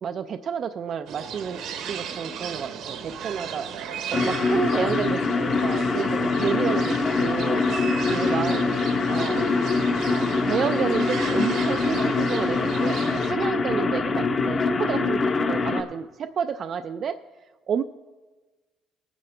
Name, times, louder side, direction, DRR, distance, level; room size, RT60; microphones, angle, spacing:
voice 1, 0.0-5.2 5.6-7.6 8.1-8.6 9.1-9.5 10.4-17.2 17.7-17.8, right 7 dB, 45° right, 7 dB, 0.4 m, -30 dB
sound 1, 1.1-13.3, right 7 dB, 70° right, 1.0 m, -36 dB
sound 2, 4.1-15.8, left 4 dB, 35° left, 1.0 m, -24 dB
18.5 x 9.0 x 3.3 m, 1.3 s
cardioid pair, 120°, 0 cm